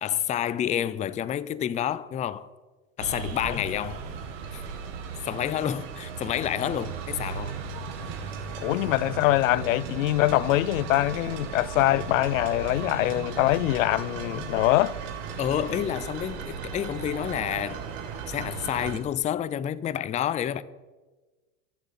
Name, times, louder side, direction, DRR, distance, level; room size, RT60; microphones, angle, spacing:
voice 1, 0.0-2.5 3.0-4.0 4.5-4.6 5.3-7.6 15.4-17.8 18.3-20.6, left 10 dB, 20° left, 0.4 m, -29 dB
sound 1, 3.0-19.0, right 6 dB, 70° right, 1.9 m, -36 dB
voice 2, 8.6-15.0, left 16 dB, 80° left, 0.5 m, -23 dB
10.5 x 7.3 x 8.2 m
hypercardioid pair, 100°, 39 cm